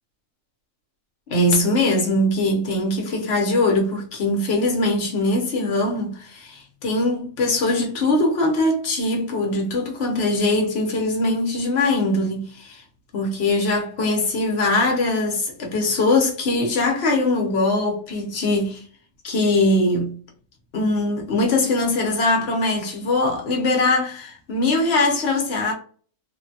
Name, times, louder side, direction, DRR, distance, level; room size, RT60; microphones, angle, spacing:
voice 1, 1.3-12.8 13.1-18.8 19.2-20.2 20.7-25.7, left 2 dB, 55° left, 0.9 m, -21 dB
3.1 x 2.2 x 2.7 m
omnidirectional pair, 1.4 m